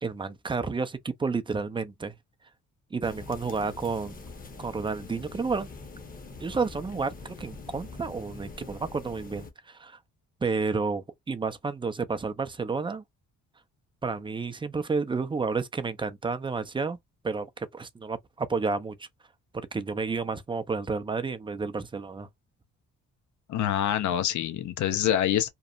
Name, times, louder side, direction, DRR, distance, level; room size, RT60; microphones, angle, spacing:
voice 1, 0.0-2.1 2.9-4.2 4.6-5.7 6.4-10.0 10.4-13.0 14.0-17.0 17.2-19.1 19.5-22.3, right 4 dB, 15° right, 0.4 m, -31 dB
sound 1, 3.0-9.5, left 3 dB, 30° left, 0.8 m, -44 dB
voice 2, 23.5-25.5, left 10 dB, 70° left, 0.7 m, -26 dB
3.0 x 2.0 x 2.3 m
cardioid pair, 90°, 30 cm